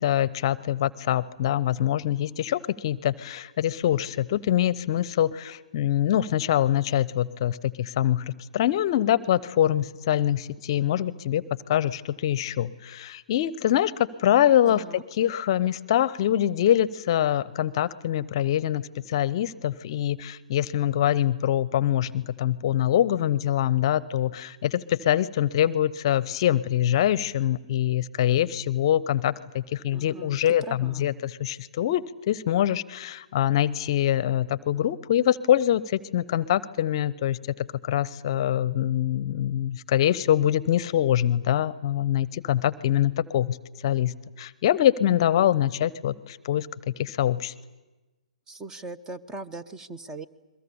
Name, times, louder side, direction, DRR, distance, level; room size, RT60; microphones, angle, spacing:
voice 1, 0.0-11.4 11.7-43.6 43.8-46.7 47.0-47.5, left 11 dB, 45° left, 20 dB, 0.7 m, -24 dB
voice 2, 14.6-15.0 29.9-31.1 48.5-50.3, right 3 dB, 15° right, 11 dB, 0.9 m, -40 dB
30.0 x 22.5 x 7.0 m, 1.2 s
figure-of-eight pair, 135°, 4 cm